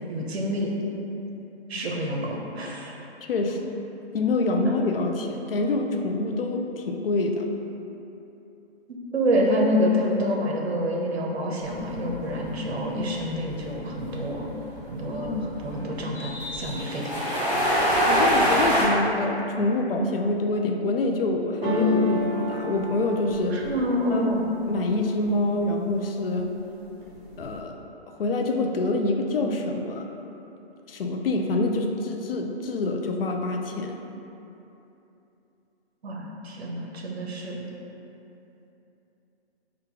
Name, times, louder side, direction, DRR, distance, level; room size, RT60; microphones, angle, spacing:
voice 1, 0.1-0.7 1.7-3.0 4.6-4.7 9.1-14.5 14.9-17.2 23.5-24.4 36.0-37.6, equal, 70° right, -1 dB, 0.8 m, -27 dB
voice 2, 3.3-3.7 4.1-7.5 15.1-15.5 17.8-23.6 24.1-24.4 24.7-26.5 27.4-27.7 28.2-30.0 30.9-34.0, left 2 dB, 60° left, 3 dB, 0.5 m, -26 dB
sound 1, 11.6-18.8, equal, 15° left, 0.7 m, -25 dB
sound 2, 21.6-25.5 25.9-26.5 26.8-27.6, left 2 dB, 25° right, 0.6 m, -29 dB
3.7 x 2.3 x 4.4 m, 2.9 s
hypercardioid pair, 155°, 32 cm